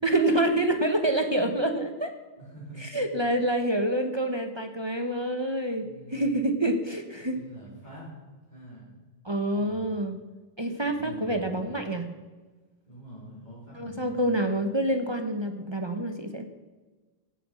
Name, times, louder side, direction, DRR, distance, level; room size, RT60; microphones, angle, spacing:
voice 1, 0.0-2.1 2.8-7.4 9.2-10.2 10.6-12.1 13.8-16.4, right 1 dB, 25° right, 7 dB, 1.0 m, -27 dB
voice 2, 2.4-3.0 5.8-6.4 7.3-8.1 8.5-9.0 9.6-9.9 10.9-11.7 12.9-14.3, equal, 45° left, -7 dB, 3.8 m, -44 dB
17.0 x 7.8 x 6.4 m, 1.3 s
omnidirectional pair, 1.1 m